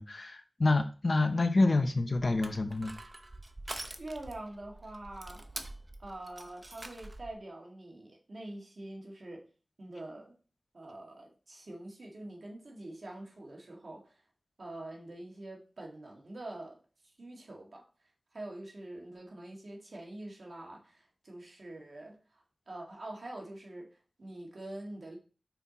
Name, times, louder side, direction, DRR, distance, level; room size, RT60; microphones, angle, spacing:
voice 1, 0.0-2.9, left 2 dB, 60° left, 8 dB, 0.8 m, -27 dB
Crushing, 2.1-7.3, right 2 dB, 40° right, 0.8 m, -46 dB
voice 2, 4.0-5.4 6.0-9.5 9.8-10.3 10.7-14.2 14.6-16.8 17.2-17.8 18.3-25.2, right 1 dB, 70° right, -1 dB, 1.9 m, -45 dB
5.7 x 4.6 x 4.1 m, 0.36 s
cardioid pair, 50°, 0 cm